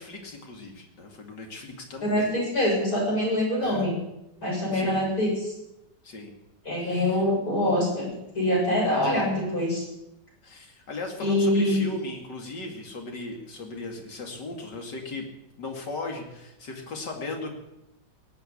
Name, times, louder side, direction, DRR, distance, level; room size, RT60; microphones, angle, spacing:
voice 1, 0.0-2.3 3.6-3.9 4.7-5.0 6.0-6.3 6.8-7.2 9.1-9.4 10.4-15.3 15.6-17.6, left 2 dB, 65° left, 2 dB, 3.1 m, -37 dB
voice 2, 2.0-3.9 4.4-5.5 6.7-9.8 11.2-11.8, left 1 dB, 50° left, -3 dB, 7.3 m, -24 dB
18.0 x 8.6 x 8.5 m, 0.89 s
omnidirectional pair, 2.0 m